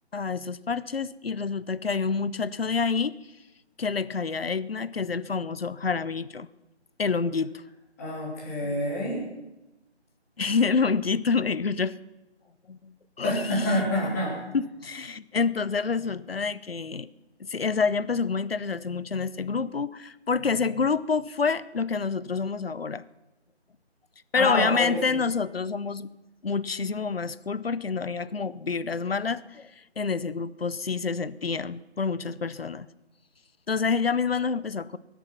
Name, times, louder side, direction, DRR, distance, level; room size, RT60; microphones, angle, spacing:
voice 1, 0.1-3.1 3.8-6.5 7.0-7.6 10.4-12.0 12.7-13.8 14.5-17.1 17.4-23.0 24.3-26.1 26.4-29.7 30.0-32.9 33.7-35.0, left 5 dB, 60° left, 17 dB, 0.7 m, -28 dB
voice 2, 8.0-9.2 13.2-14.3 24.3-25.0, left 1 dB, 15° left, -4 dB, 3.1 m, -27 dB
21.5 x 9.7 x 5.8 m, 0.98 s
figure-of-eight pair, 155°, 34 cm